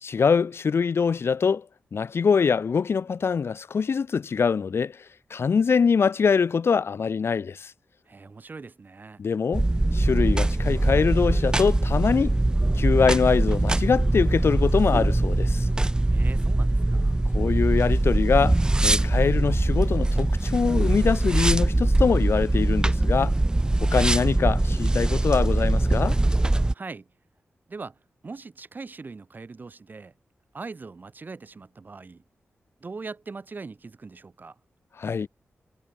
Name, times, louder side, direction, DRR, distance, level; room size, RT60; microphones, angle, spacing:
voice 1, 0.0-1.6 1.9-5.0 5.3-7.7 9.2-9.6 9.9-12.3 12.7-15.7 17.3-23.4 23.8-26.2 35.0-35.3, left 6 dB, 65° left, 1.4 m, -23 dB
voice 2, 8.1-9.2 16.1-17.2 26.7-27.1 27.7-30.1 30.5-32.2 32.8-34.6, right 4 dB, 45° right, 6.9 m, -41 dB
sound 1, 9.5-26.7, right 2 dB, 20° right, 1.5 m, -22 dB
wide cardioid pair, 110°, 5 cm